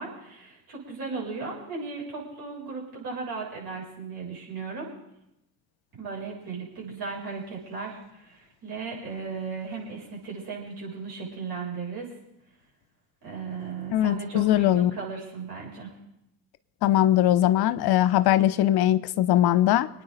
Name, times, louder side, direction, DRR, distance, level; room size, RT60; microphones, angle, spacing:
voice 1, 0.0-4.9 6.0-12.1 13.2-16.0, right 4 dB, 55° right, -4 dB, 7.4 m, -36 dB
voice 2, 13.9-15.0 16.8-19.9, left 13 dB, 60° left, 14 dB, 0.8 m, -21 dB
27.0 x 9.5 x 4.0 m, 0.84 s
hypercardioid pair, 50°, 44 cm